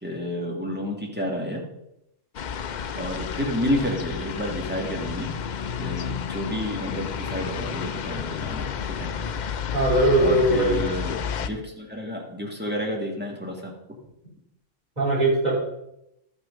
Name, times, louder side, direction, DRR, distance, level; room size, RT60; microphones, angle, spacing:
voice 1, 0.0-1.6 2.9-5.3 5.8-9.1 10.2-13.7, left 1 dB, 10° right, -2 dB, 2.1 m, -30 dB
sound 1, 2.3-11.5, left 7 dB, 60° left, 0.4 m, -31 dB
voice 2, 9.7-10.8 15.0-15.5, right 1 dB, 30° right, -6 dB, 4.1 m, -20 dB
12.5 x 6.2 x 5.3 m, 0.84 s
omnidirectional pair, 1.3 m